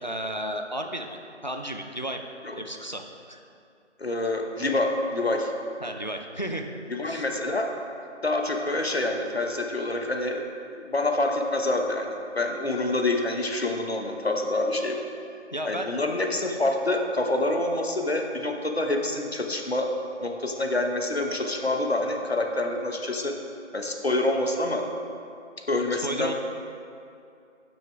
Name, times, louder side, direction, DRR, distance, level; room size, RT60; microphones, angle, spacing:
voice 1, 0.0-1.1 1.4-2.2 2.6-3.0 3.3-3.4 5.8-6.7 7.1-7.2 15.5-15.9 25.9-26.3, right 1 dB, 40° left, 4 dB, 0.5 m, -33 dB
voice 2, 4.0-5.5 6.9-7.7 8.2-10.4 10.7-15.0 15.6-19.9 20.2-23.3 23.7-24.8 25.7-26.3, left 2 dB, 60° left, 3 dB, 1.0 m, -27 dB
11.5 x 9.3 x 2.4 m, 2.5 s
figure-of-eight pair, 175°, 36 cm